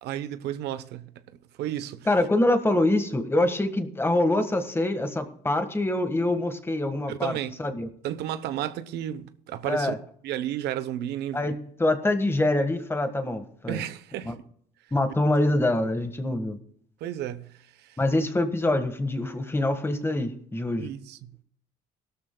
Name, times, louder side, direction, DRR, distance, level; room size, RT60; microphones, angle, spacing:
voice 1, 0.0-1.1 1.6-2.1 7.1-7.6 8.0-9.9 10.2-11.6 13.7-14.3 17.0-18.0 20.8-21.2, right 11 dB, 80° right, 0.9 m, -32 dB
voice 2, 2.1-7.3 7.6-7.9 9.6-10.0 11.3-13.8 14.2-14.3 14.9-16.6 18.0-20.9, left 1 dB, 15° left, 1.6 m, -25 dB
17.5 x 13.0 x 2.3 m
cardioid pair, 110°, 17 cm